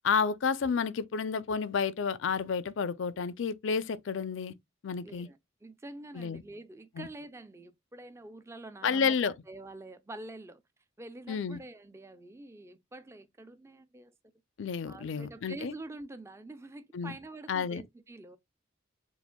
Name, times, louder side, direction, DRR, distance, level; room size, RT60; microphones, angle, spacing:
voice 1, 0.0-4.5 4.8-5.3 6.1-6.4 7.0-7.1 8.8-9.3 11.3-11.6 14.6-15.7 16.9-17.1 17.5-17.8, left 6 dB, 65° left, 0.4 m, -30 dB
voice 2, 5.0-10.6 11.0-14.1 14.9-18.4, right 2 dB, 15° right, 0.4 m, -46 dB
6.9 x 2.4 x 2.2 m
head